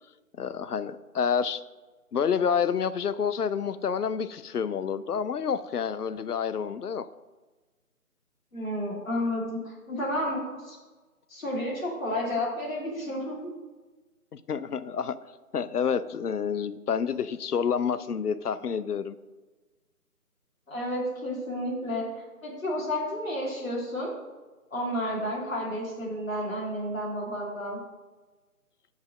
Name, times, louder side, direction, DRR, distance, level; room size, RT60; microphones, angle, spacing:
voice 1, 0.4-1.6 2.1-7.1 14.3-15.2 15.5-19.1, left 7 dB, 75° left, 14 dB, 0.6 m, -28 dB
voice 2, 8.5-10.8 11.3-13.5 20.7-24.1 24.7-27.8, left 1 dB, 60° left, -3 dB, 2.5 m, -31 dB
5.3 x 5.0 x 6.3 m, 1.2 s
figure-of-eight pair, 155°, 46 cm